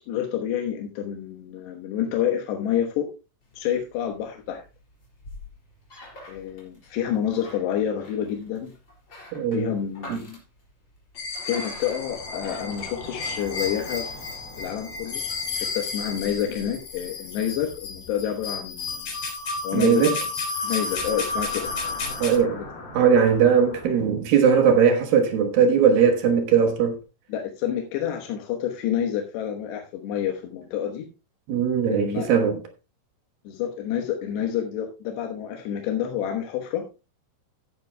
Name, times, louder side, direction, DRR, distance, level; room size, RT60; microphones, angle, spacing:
voice 1, 0.1-3.1 3.5-4.6 6.3-8.7 9.5-10.4 11.5-14.3 14.6-15.2 15.6-19.1 19.6-20.0 20.6-21.6 22.5-22.6 27.3-31.1 31.9-32.3 33.4-36.8, left 9 dB, 90° left, 3.4 m, -28 dB
sound 1, 3.4-13.7, left 1 dB, 25° left, 4.8 m, -47 dB
voice 2, 9.3-9.7 10.1-10.2 19.7-20.1 22.2-22.6 22.9-27.0 31.5-32.6, right 7 dB, 70° right, 2.8 m, -19 dB
sound 2, 11.2-22.4, left 4 dB, 75° left, 6.0 m, -32 dB
sound 3, 11.4-18.0 18.3-18.4 20.4-23.9, left 2 dB, 45° left, 6.1 m, -43 dB
15.5 x 10.5 x 2.2 m
omnidirectional pair, 4.8 m